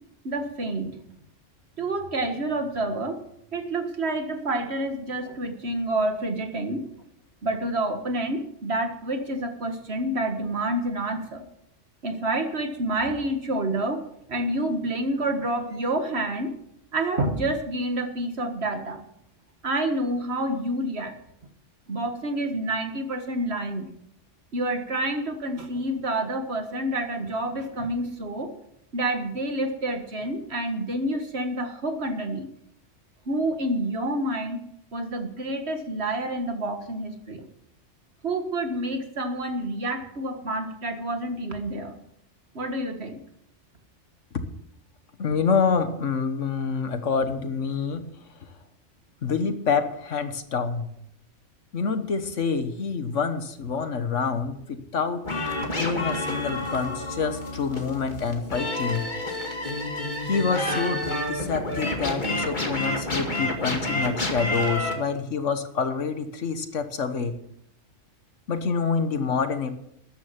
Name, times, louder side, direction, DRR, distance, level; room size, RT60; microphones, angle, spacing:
voice 1, 0.2-1.0 1.8-3.2 3.5-6.9 7.4-11.5 12.0-14.0 14.3-16.5 16.9-19.0 19.6-21.2 21.9-23.9 24.5-28.5 28.9-32.5 33.3-34.6 34.9-37.5 38.2-42.0 42.6-43.2, right 1 dB, 60° right, 6 dB, 1.9 m, -28 dB
voice 2, 45.2-48.0 48.3-48.5 49.2-50.9 51.7-55.2 55.7-59.1 60.2-67.4 68.5-69.7, left 5 dB, 85° left, 9 dB, 1.6 m, -27 dB
sound 1, 55.2-64.9, left 1 dB, 40° left, 2.3 m, -29 dB
13.5 x 10.5 x 5.9 m, 0.74 s
omnidirectional pair, 1.2 m